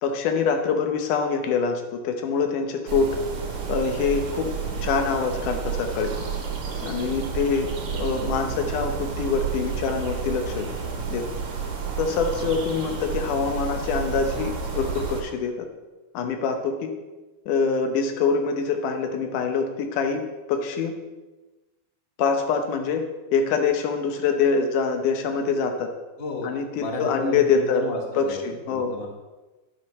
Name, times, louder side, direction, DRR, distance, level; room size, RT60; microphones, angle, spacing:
voice 1, 0.0-3.1 3.7-4.5 4.8-6.1 6.8-7.7 7.9-10.7 11.1-11.2 12.0-15.7 16.1-16.9 17.5-20.2 20.5-20.9 22.2-23.0 23.3-25.9 26.4-27.8 28.2-28.9, left 5 dB, 80° left, 5 dB, 2.5 m, -25 dB
sound 1, 2.9-15.2, right 5 dB, 65° right, 2.7 m, -30 dB
voice 2, 26.2-29.1, left 3 dB, 45° left, 1 dB, 0.7 m, -33 dB
11.0 x 10.5 x 3.2 m, 1.1 s
omnidirectional pair, 3.6 m